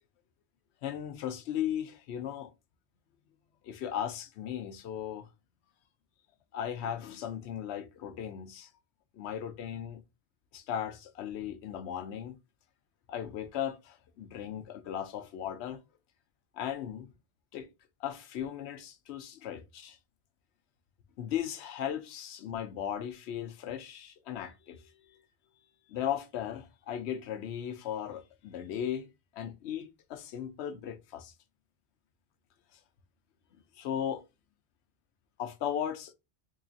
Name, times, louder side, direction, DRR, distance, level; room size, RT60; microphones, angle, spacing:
voice 1, 0.8-2.5 3.6-5.3 6.5-8.7 9.1-10.0 10.5-12.4 13.1-15.8 16.5-17.1 17.5-17.7 18.0-20.0 21.2-25.2 25.9-29.1 29.3-31.3 33.8-34.2 35.4-36.1, left 9 dB, 85° left, 0.9 m, -37 dB
3.8 x 3.1 x 2.6 m
omnidirectional pair, 1.1 m